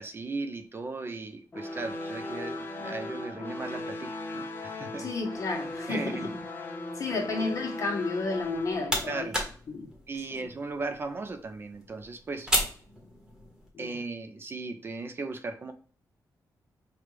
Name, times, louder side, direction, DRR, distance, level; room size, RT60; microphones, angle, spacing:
voice 1, 0.0-5.1 5.9-6.3 7.1-7.4 9.1-9.4 10.1-12.5 13.8-15.7, right 3 dB, 35° right, 0.4 m, -37 dB
sound 1, 1.5-8.9, left 2 dB, 30° left, 0.7 m, -37 dB
voice 2, 5.0-6.4 6.9-9.3 9.7-9.9 13.7-14.0, left 3 dB, 50° left, 1.0 m, -32 dB
sound 2, 8.4-13.7, equal, 10° right, 1.1 m, -34 dB
4.9 x 2.4 x 3.0 m
wide cardioid pair, 150°, 7 cm